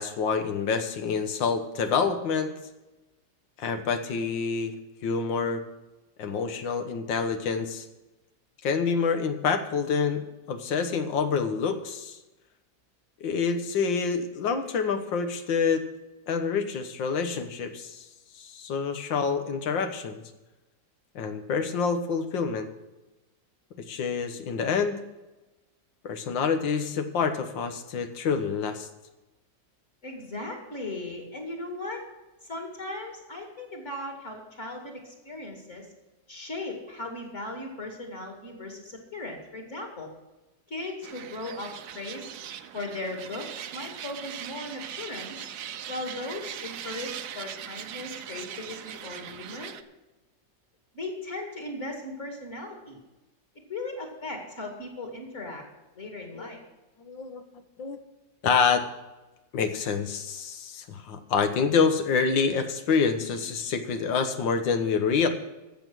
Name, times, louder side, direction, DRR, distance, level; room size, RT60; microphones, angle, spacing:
voice 1, 0.0-2.5 3.6-4.7 5.0-5.6 6.2-7.9 8.6-10.2 10.5-12.2 13.2-15.8 16.3-18.1 18.4-20.2 21.2-22.7 23.9-25.0 26.0-28.9 56.4-56.5 57.0-57.4 57.8-58.0 58.4-58.9 59.5-65.3, left 5 dB, 85° left, 8 dB, 1.9 m, -27 dB
voice 2, 30.0-32.0 32.4-35.9 36.3-40.1 40.7-42.3 42.7-45.5 45.9-49.7 50.9-53.0 53.7-55.6 55.9-56.6, left 2 dB, 40° left, 2 dB, 2.6 m, -37 dB
sound 1, 41.0-49.8, right 10 dB, 65° right, 1.2 m, -40 dB
14.5 x 7.3 x 6.2 m, 1.1 s
omnidirectional pair, 2.0 m